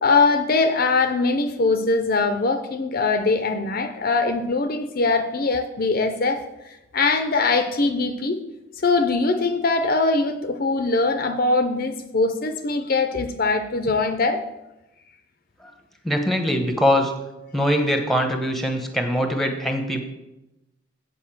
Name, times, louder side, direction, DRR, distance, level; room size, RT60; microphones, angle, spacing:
voice 1, 0.0-6.4 6.9-8.4 8.8-14.4, left 3 dB, 45° left, 8 dB, 0.5 m, -22 dB
voice 2, 16.0-17.1 17.5-20.0, equal, ahead, 4 dB, 0.9 m, -22 dB
8.5 x 5.1 x 7.4 m, 0.95 s
head